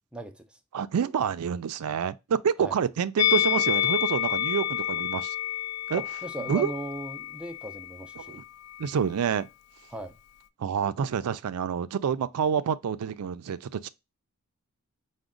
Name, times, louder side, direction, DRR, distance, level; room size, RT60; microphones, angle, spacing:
voice 1, 0.1-0.6 2.6-2.8 5.9-8.4 9.9-10.2, right 2 dB, 5° right, 0.4 m, -38 dB
voice 2, 0.7-5.3 5.9-6.0 6.5-6.7 8.3-8.4 8.8-9.5 10.6-13.9, right 7 dB, 85° right, 0.4 m, -28 dB
Musical instrument, 3.2-8.4 8.7-8.9, left 12 dB, 85° left, 0.4 m, -29 dB
4.9 x 2.2 x 3.7 m
head